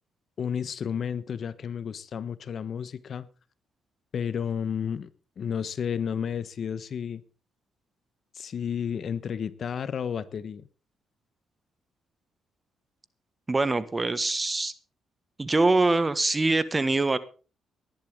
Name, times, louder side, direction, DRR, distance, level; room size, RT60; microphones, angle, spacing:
voice 1, 0.4-3.3 4.1-5.1 5.4-7.2 8.3-10.6, left 7 dB, 55° left, 15 dB, 1.1 m, -32 dB
voice 2, 13.5-14.7 15.4-17.2, right 3 dB, 20° right, 14 dB, 1.5 m, -24 dB
18.5 x 11.5 x 3.7 m, 0.35 s
cardioid pair, 90°, 0 cm